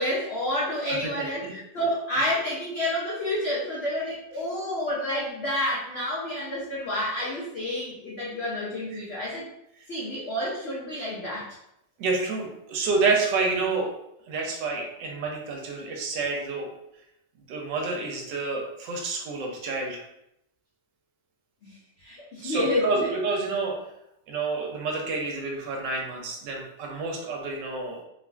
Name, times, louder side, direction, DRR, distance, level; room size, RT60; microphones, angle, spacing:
voice 1, 0.0-9.5 9.9-11.6 21.6-23.1, left 1 dB, 80° left, -6 dB, 0.5 m, -29 dB
voice 2, 1.2-1.5 12.0-13.9 14.3-16.7 17.5-20.0 22.4-23.8 24.3-28.0, right 3 dB, 90° right, 0 dB, 1.3 m, -28 dB
3.2 x 2.4 x 2.2 m, 0.80 s
omnidirectional pair, 1.9 m